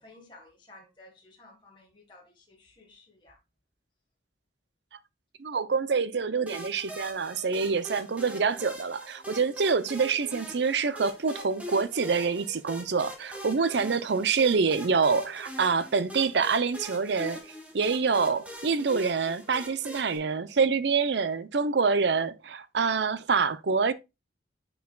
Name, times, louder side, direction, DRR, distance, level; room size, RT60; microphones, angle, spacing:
voice 1, 0.0-3.4, left 2 dB, 25° left, 1.5 m, -54 dB
voice 2, 5.4-17.4 17.7-23.9, right 5 dB, 75° right, 0.6 m, -26 dB
sound 1, 6.5-20.2, equal, 10° right, 1.1 m, -43 dB
9.2 x 4.6 x 2.3 m
head